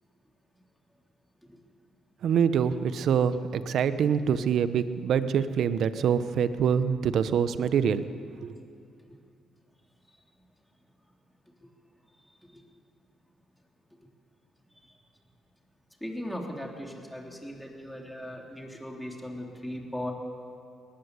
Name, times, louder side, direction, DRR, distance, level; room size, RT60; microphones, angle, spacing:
voice 1, 2.2-8.0 8.4-8.6, right 7 dB, 70° right, 12 dB, 1.0 m, -25 dB
voice 2, 12.2-12.6 13.9-14.0 14.7-15.0 16.0-20.1, left 1 dB, 5° left, 0 dB, 3.4 m, -39 dB
19.5 x 15.0 x 9.7 m, 2.4 s
cardioid pair, 90°, 0 cm